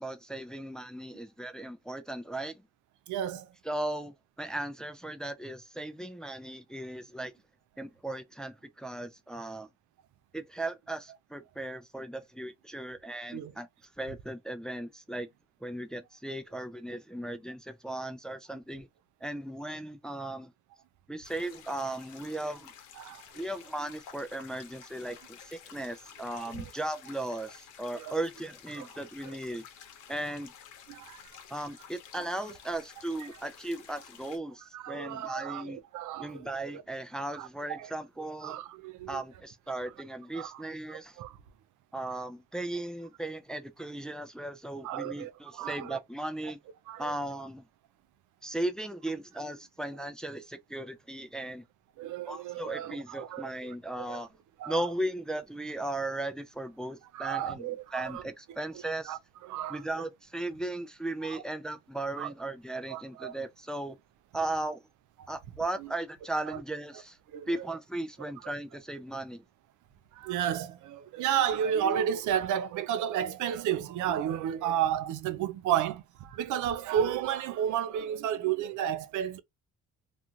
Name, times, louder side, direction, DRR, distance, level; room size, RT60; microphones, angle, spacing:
voice 1, 0.0-2.6 3.7-7.3 7.8-9.7 10.3-13.7 14.0-15.3 15.6-18.9 19.2-20.5 21.1-22.7 23.3-29.6 30.1-30.5 31.5-35.8 36.2-38.6 39.1-41.2 41.9-46.6 47.0-47.6 48.4-51.6 52.3-54.3 54.7-59.2 59.7-64.0 64.3-64.8 65.3-67.2 67.5-69.4, right 1 dB, ahead, 0.4 m, -37 dB
voice 2, 3.1-3.5 13.3-13.5 23.0-23.2 26.5-26.6 28.0-28.2 28.7-28.9 29.3-29.4 30.9-31.2 34.7-36.5 37.3-37.9 38.4-39.2 40.3-40.6 40.9-41.4 44.8-46.0 46.9-47.1 52.0-53.7 54.0-54.2 54.6-54.8 57.1-58.2 59.1-59.9 61.3-61.4 62.2-62.3 62.9-63.3 65.8-65.9 66.5-66.6 67.3-67.7 70.1-79.4, right 9 dB, 80° right, 0.5 m, -32 dB
sound 1, 21.2-34.4, left 8 dB, 85° left, 0.9 m, -52 dB
2.5 x 2.4 x 2.8 m
cardioid pair, 90°, 30 cm